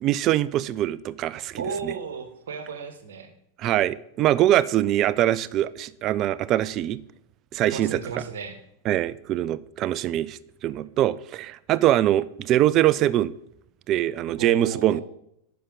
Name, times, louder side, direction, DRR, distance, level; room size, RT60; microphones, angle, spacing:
voice 1, 0.0-1.9 3.6-7.0 7.5-8.0 8.9-13.3 13.9-15.0, right 13 dB, 40° right, 0.4 m, -23 dB
voice 2, 1.6-3.3 7.7-8.6 14.4-15.0, right 5 dB, 70° right, 1.3 m, -34 dB
10.0 x 5.7 x 3.9 m
figure-of-eight pair, 95°, 0 cm